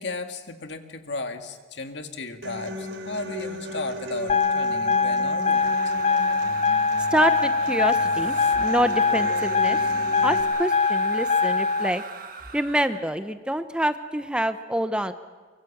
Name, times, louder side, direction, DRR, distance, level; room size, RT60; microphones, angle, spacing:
voice 1, 0.0-5.9 7.9-8.0 8.4-8.5, left 3 dB, 65° left, 6 dB, 1.9 m, -35 dB
Human voice / Acoustic guitar, 2.4-10.4, equal, 85° right, 4.0 m, -37 dB
sound 1, 4.3-11.9, left 4 dB, 35° left, 0.7 m, -23 dB
sound 2, 5.5-13.1, right 6 dB, 50° right, 1.5 m, -40 dB
voice 2, 7.1-9.8 10.2-12.0 12.5-15.1, right 1 dB, 5° right, 10 dB, 0.7 m, -26 dB
24.5 x 24.0 x 7.3 m, 1.4 s
head